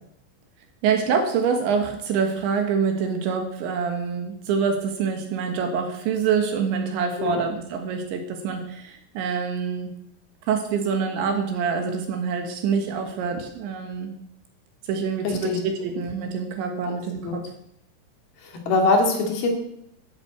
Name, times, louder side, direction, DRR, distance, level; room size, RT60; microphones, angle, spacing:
voice 1, 0.8-9.9 10.5-14.1 14.9-17.4, right 6 dB, 70° right, 5 dB, 3.6 m, -26 dB
voice 2, 15.2-15.6 16.8-16.9 17.2-17.4 18.4-19.5, left 3 dB, 55° left, 3 dB, 3.8 m, -23 dB
13.5 x 9.5 x 7.9 m, 0.76 s
omnidirectional pair, 5.8 m